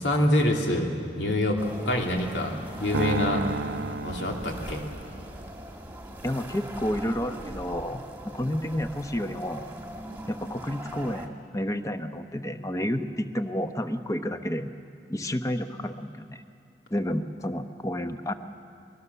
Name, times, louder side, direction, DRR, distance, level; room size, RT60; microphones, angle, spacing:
voice 1, 0.0-3.4 4.0-4.8, left 1 dB, 85° left, 1 dB, 2.7 m, -26 dB
sound 1, 1.6-11.3, right 1 dB, 10° right, 1.6 m, -41 dB
sound 2, 2.9-5.3, right 3 dB, 80° right, 0.6 m, -31 dB
voice 2, 6.2-9.7 10.3-14.7 15.1-16.4 16.9-18.3, equal, 20° left, 8 dB, 0.9 m, -30 dB
23.5 x 22.0 x 6.9 m, 2.5 s
head